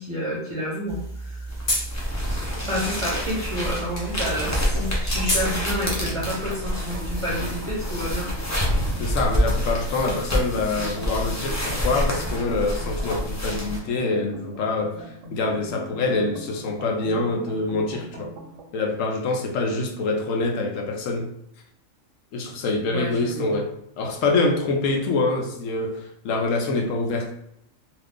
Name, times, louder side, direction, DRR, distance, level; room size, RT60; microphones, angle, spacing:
voice 1, 0.0-1.5 2.7-8.3 22.9-23.6, equal, 30° right, -6 dB, 0.7 m, -29 dB
sound 1, 0.9-6.3, equal, 45° left, 1.0 m, -31 dB
sound 2, 1.5-13.8, equal, 20° left, 0.4 m, -27 dB
sound 3, 6.0-18.7, right 1 dB, 75° right, 0.9 m, -41 dB
voice 2, 9.0-18.3 18.7-21.3 22.3-23.7 24.0-27.3, left 3 dB, 75° left, 2 dB, 0.9 m, -25 dB
2.5 x 2.5 x 3.5 m, 0.76 s
omnidirectional pair, 1.4 m